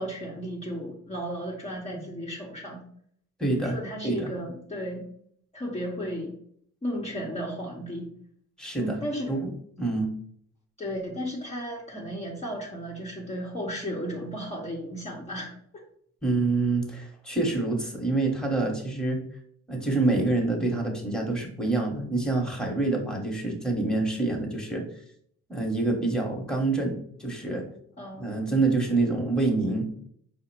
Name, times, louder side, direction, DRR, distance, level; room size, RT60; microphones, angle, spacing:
voice 1, 0.0-2.8 3.6-5.0 5.5-6.3 6.8-8.1 8.8-9.4 10.8-15.8 28.0-28.3, equal, 20° left, -3 dB, 0.9 m, -34 dB
voice 2, 3.4-3.8 4.0-4.3 8.6-9.0 9.3-9.5 9.8-10.1 16.2-19.2 19.7-24.8 25.5-27.6 28.2-29.9, right 3 dB, ahead, 0 dB, 1.2 m, -26 dB
4.8 x 2.1 x 4.6 m, 0.64 s
cardioid pair, 90°, 30 cm